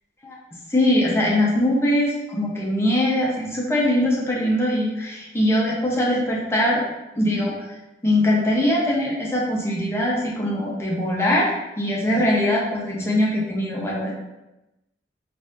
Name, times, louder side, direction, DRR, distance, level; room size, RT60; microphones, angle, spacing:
voice 1, 0.7-6.8 7.2-7.5 8.0-11.5 11.8-14.1, left 1 dB, 15° left, -4 dB, 0.7 m, -21 dB
4.0 x 2.5 x 2.5 m, 0.95 s
head